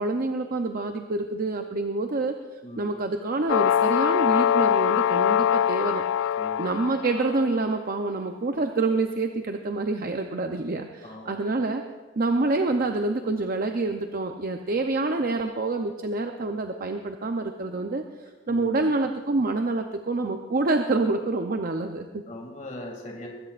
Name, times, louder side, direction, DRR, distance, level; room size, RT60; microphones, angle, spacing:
voice 1, 0.0-2.3 2.8-6.0 6.6-11.8 12.2-18.0 18.5-22.2, right 3 dB, 50° right, 5 dB, 0.7 m, -27 dB
voice 2, 2.6-2.9 6.4-6.7 11.0-11.5 15.0-15.2 18.5-18.9 22.3-23.3, left 1 dB, 40° left, 0 dB, 2.4 m, -40 dB
sound 1, 3.5-7.6, left 9 dB, 80° left, 0.4 m, -23 dB
22.0 x 16.5 x 2.5 m, 1.3 s
head